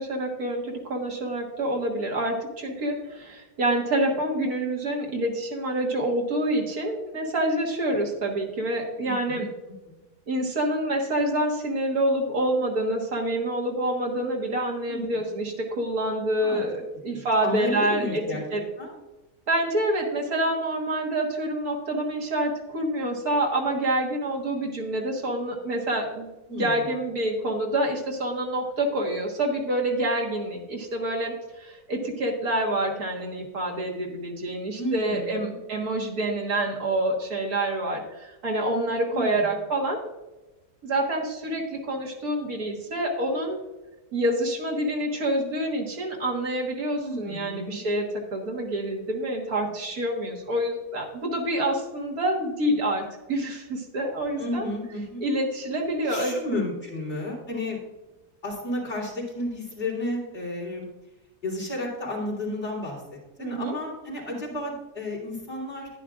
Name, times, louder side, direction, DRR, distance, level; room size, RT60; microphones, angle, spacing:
voice 1, 0.0-9.5 10.3-18.2 18.5-18.6 19.5-26.3 26.6-40.0 40.8-43.6 44.1-54.7 55.2-56.4 63.4-63.8, right 1 dB, 65° right, 0 dB, 2.1 m, -27 dB
voice 2, 9.0-9.5 9.9-10.0 14.9-15.3 16.4-16.6 17.1-18.4 18.8-18.9 26.5-26.8 34.8-35.5 39.1-39.5 47.0-47.8 54.4-55.2 56.0-57.8 58.4-60.9 61.4-65.9, left 1 dB, 35° left, -5 dB, 3.6 m, -32 dB
11.0 x 9.8 x 2.5 m, 1.1 s
omnidirectional pair, 1.7 m